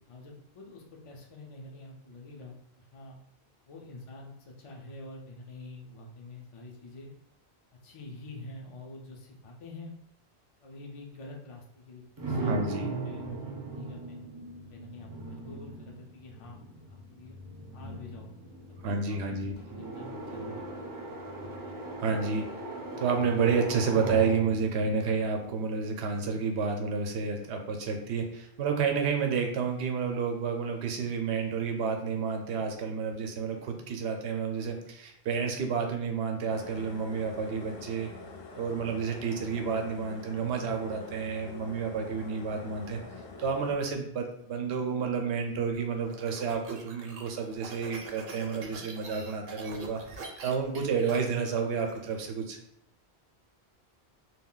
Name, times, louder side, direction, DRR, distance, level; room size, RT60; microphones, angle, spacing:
voice 1, 0.1-3.2 3.7-7.1 7.8-9.9 10.6-14.2 14.7-16.6 16.9-17.4 17.7-18.3 18.7-20.6, left 2 dB, 50° left, -1 dB, 0.4 m, -47 dB
sound 1, 12.2-26.0, right 2 dB, 35° right, 0.3 m, -39 dB
voice 2, 12.5-12.9 18.8-19.5 22.0-22.5 23.0-38.1 38.6-43.0 43.4-50.0 50.4-52.6, right 5 dB, 90° right, 4 dB, 0.8 m, -30 dB
sound 2, 36.5-43.7, left 3 dB, 70° left, 0.7 m, -45 dB
sound 3, 45.7-52.3, right 3 dB, 60° right, 0.7 m, -44 dB
2.3 x 2.2 x 3.6 m, 0.75 s
omnidirectional pair, 1.1 m